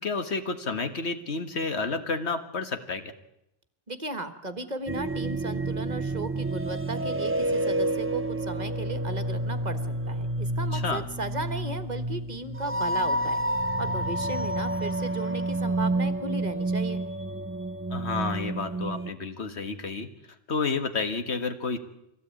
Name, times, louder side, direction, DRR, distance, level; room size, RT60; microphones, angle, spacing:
voice 1, 0.0-3.1 10.7-11.0 17.9-20.1 20.5-21.8, left 4 dB, 60° left, 8 dB, 2.0 m, -30 dB
voice 2, 3.9-9.8 10.1-13.4 13.8-17.0, right 2 dB, 35° right, 10 dB, 1.5 m, -35 dB
sound 1, 4.9-19.1, right 1 dB, 15° right, 0.7 m, -29 dB
24.0 x 16.5 x 8.8 m, 0.84 s
omnidirectional pair, 1.2 m